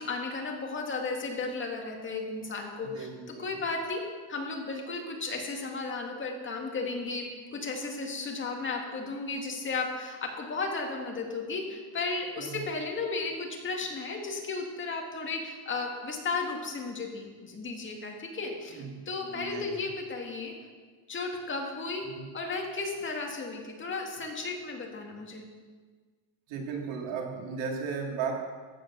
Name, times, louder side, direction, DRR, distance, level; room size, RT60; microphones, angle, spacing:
voice 1, 0.0-4.0 4.3-7.3 7.5-20.5 21.1-22.1 22.3-25.4, left 3 dB, 25° left, 1 dB, 2.1 m, -34 dB
voice 2, 2.9-3.5 12.4-12.6 18.7-19.8 22.1-22.3 26.5-28.3, right 5 dB, 65° right, 0 dB, 3.0 m, -36 dB
15.0 x 9.0 x 6.2 m, 1.5 s
cardioid pair, 155°, 49 cm